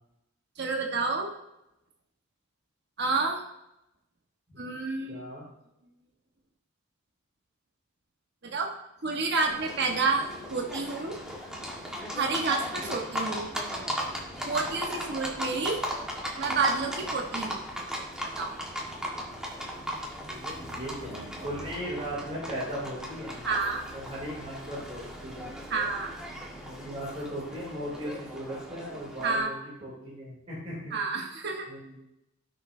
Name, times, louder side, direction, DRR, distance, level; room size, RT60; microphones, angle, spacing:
voice 1, 0.6-1.3 3.0-3.4 4.6-5.2 8.4-8.7 9.0-11.2 12.2-13.5 14.4-15.8 16.4-17.6 18.4-18.5 23.4-23.8 25.7-26.1 29.2-29.5 30.9-31.7, right 4 dB, 55° right, 1 dB, 1.3 m, -29 dB
voice 2, 5.1-5.4 12.8-12.9 20.3-23.4 23.9-25.5 26.6-30.9 31.7-32.1, equal, 30° right, -7 dB, 2.9 m, -38 dB
Livestock farm animals working animals, 9.5-29.4, equal, 5° right, 1.5 m, -37 dB
16.0 x 6.7 x 2.7 m, 0.87 s
head